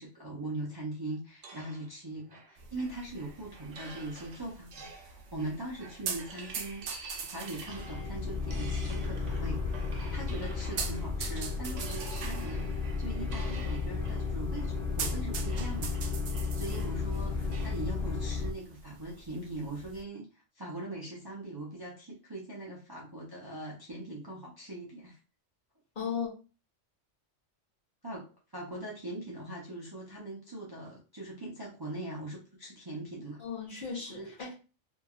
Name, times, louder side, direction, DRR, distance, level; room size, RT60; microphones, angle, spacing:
voice 1, 0.0-12.7 13.0-15.9 16.5-20.3 20.5-25.2 28.0-33.4 34.1-34.3, right 1 dB, 25° right, -4 dB, 0.5 m, -41 dB
sound 1, 1.4-11.2 11.6-17.9, right 4 dB, 85° right, 1.0 m, -49 dB
sound 2, 2.6-20.0, right 6 dB, 65° right, 0.7 m, -44 dB
sound 3, 7.6-18.5, left 4 dB, 65° left, 0.7 m, -34 dB
voice 2, 25.9-26.3 33.4-34.5, left 6 dB, 45° left, -3 dB, 1.1 m, -36 dB
2.8 x 2.8 x 2.4 m, 0.34 s
omnidirectional pair, 1.2 m